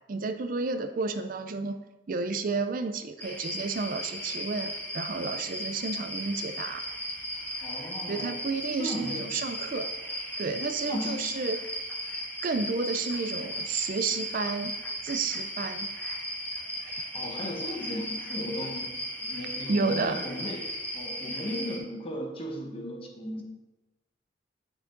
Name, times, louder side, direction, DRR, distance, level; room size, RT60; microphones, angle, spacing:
voice 1, 0.1-6.8 8.1-9.9 10.4-11.7 12.4-14.7 15.0-15.9 16.9-17.0 17.2-17.3 19.7-20.2, right 4 dB, 45° right, 9 dB, 0.4 m, -31 dB
sound 1, 3.2-21.8, equal, 10° left, 1.2 m, -36 dB
voice 2, 7.6-8.4 8.8-9.4 10.9-11.3 17.1-23.4, equal, 30° left, 3 dB, 1.1 m, -36 dB
9.3 x 5.9 x 3.8 m, 1.0 s
head